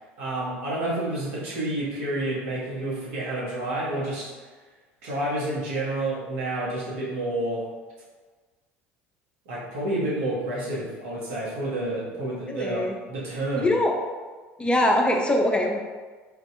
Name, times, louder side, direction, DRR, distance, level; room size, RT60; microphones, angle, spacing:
voice 1, 0.2-4.3 5.0-7.6 9.5-12.8 13.1-13.7, right 1 dB, 75° right, -5 dB, 1.2 m, -29 dB
voice 2, 12.5-13.0 13.6-14.0 14.6-15.8, left 1 dB, 15° left, 1 dB, 0.6 m, -22 dB
4.1 x 2.8 x 3.2 m, 1.4 s
hypercardioid pair, 70°, 7 cm